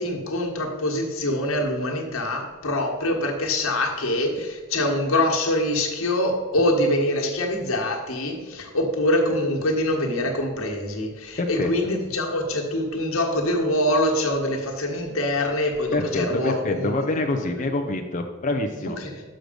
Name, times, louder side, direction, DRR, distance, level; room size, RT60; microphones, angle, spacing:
voice 1, 0.0-16.9 18.8-19.2, left 1 dB, 90° left, 0 dB, 1.4 m, -24 dB
voice 2, 11.4-11.7 15.9-19.0, left 2 dB, 35° left, 3 dB, 0.5 m, -26 dB
6.4 x 6.3 x 5.1 m, 1.4 s
head